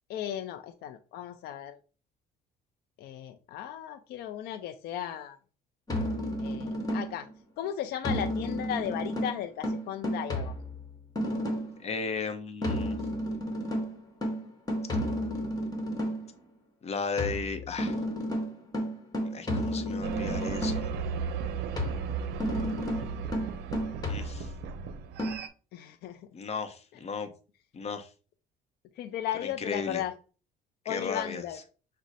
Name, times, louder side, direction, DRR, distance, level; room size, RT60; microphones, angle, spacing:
voice 1, 0.1-1.8 3.0-5.4 6.4-7.3 7.6-10.5 25.7-26.3 29.0-30.1 30.9-31.6, left 10 dB, 70° left, 6 dB, 0.5 m, -36 dB
sound 1, 5.9-7.3 8.0-11.8 12.6-16.3 17.2-21.0 21.8-24.7 25.2-25.4, equal, 20° left, 1.2 m, -32 dB
voice 2, 11.8-13.0 16.8-18.0 19.3-20.9 24.1-24.5 26.3-27.3 27.7-28.1 29.4-30.0 30.8-31.4, left 5 dB, 40° left, 8 dB, 0.8 m, -35 dB
sound 2, 20.0-25.5, right 6 dB, 75° right, 0.5 m, -35 dB
6.1 x 2.1 x 4.1 m, 0.36 s
cardioid pair, 110°, 17 cm